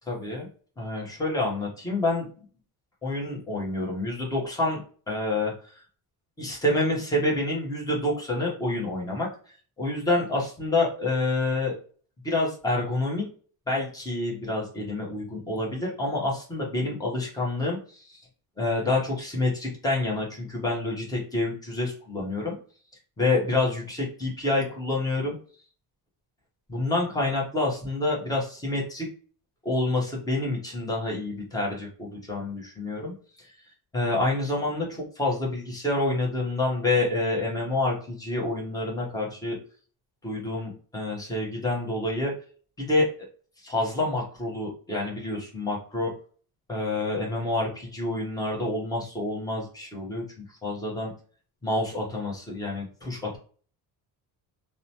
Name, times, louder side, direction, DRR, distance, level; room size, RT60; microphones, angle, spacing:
voice 1, 0.1-0.5 0.8-2.4 3.0-4.8 5.1-5.7 6.4-11.8 12.2-13.3 13.7-18.3 18.6-22.6 23.2-25.4 26.7-29.1 29.6-33.5 33.9-39.6 40.2-42.3 42.8-43.1 43.6-46.1 46.7-50.2 50.6-51.1 51.6-53.4, left 2 dB, 10° left, -3 dB, 0.8 m, -28 dB
2.9 x 2.1 x 2.7 m, 0.43 s
cardioid pair, 170°, 39 cm